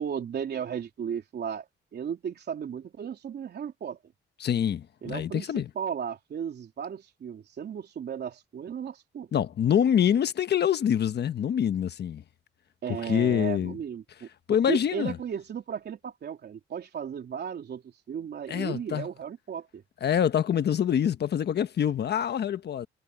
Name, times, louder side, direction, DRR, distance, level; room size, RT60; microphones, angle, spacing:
voice 1, 0.0-1.7 1.9-4.0 5.0-9.3 12.8-14.3 14.7-19.8, right 8 dB, 55° right, 3.5 m, -35 dB
voice 2, 4.4-5.7 9.3-12.2 13.1-13.8 14.5-15.2 18.5-19.1 20.0-22.9, left 9 dB, 55° left, 1.3 m, -25 dB
cardioid pair, 90°, 20 cm